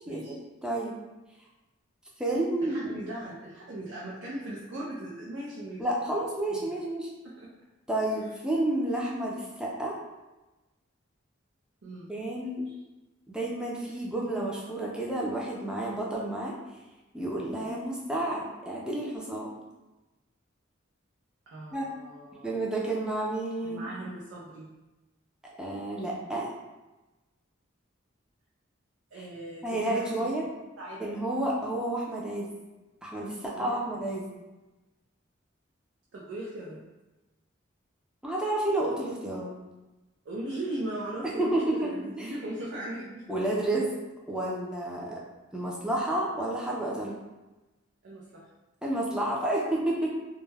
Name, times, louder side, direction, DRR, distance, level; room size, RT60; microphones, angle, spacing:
voice 1, 0.6-0.9 2.2-2.9 5.8-7.1 7.9-10.0 12.1-12.6 13.3-16.5 17.1-19.5 21.7-21.9 22.4-23.9 25.6-26.5 29.6-30.5 31.0-32.5 33.0-34.2 38.2-39.5 41.4-41.9 42.2-42.3 43.3-43.9 44.3-45.2 45.5-47.2 48.8-50.1, right 1 dB, 5° right, -4 dB, 0.4 m, -30 dB
voice 2, 2.6-6.8 7.2-7.5 11.8-12.1 21.5-22.6 23.6-24.7 29.1-30.3 30.8-31.1 33.6-33.7 36.1-36.8 40.2-43.3 48.0-48.5, right 1 dB, 75° right, -6 dB, 0.5 m, -39 dB
2.2 x 2.1 x 3.2 m, 1.1 s
head